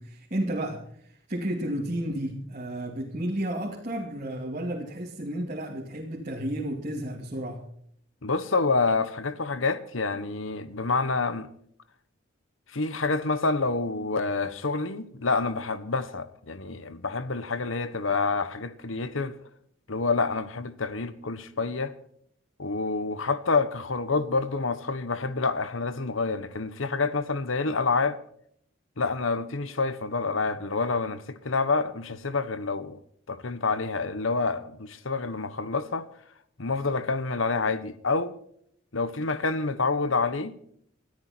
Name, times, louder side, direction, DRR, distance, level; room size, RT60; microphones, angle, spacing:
voice 1, 0.0-7.7, right 1 dB, 35° right, 2.6 m, -32 dB
voice 2, 8.2-11.5 12.7-19.4 19.9-21.9 22.6-28.2 29.0-33.0 33.3-36.1 36.6-38.4 38.9-40.5, left 3 dB, 75° left, 1.2 m, -28 dB
20.5 x 13.5 x 4.4 m
head